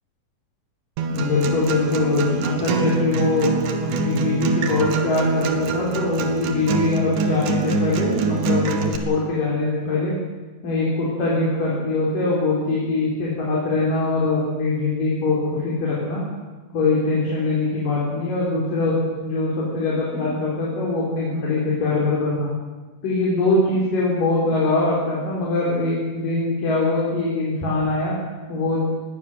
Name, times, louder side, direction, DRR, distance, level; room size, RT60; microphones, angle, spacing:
Acoustic guitar, 1.0-9.0, right 5 dB, 75° right, 3.1 m, -25 dB
voice 1, 1.1-3.5 3.8-8.7 9.1-10.1 10.6-16.2 16.7-19.0 19.2-22.5 23.0-28.1 28.5-28.9, left 3 dB, 85° left, -5 dB, 5.4 m, -22 dB
21.0 x 17.0 x 7.8 m, 1.3 s
omnidirectional pair, 3.8 m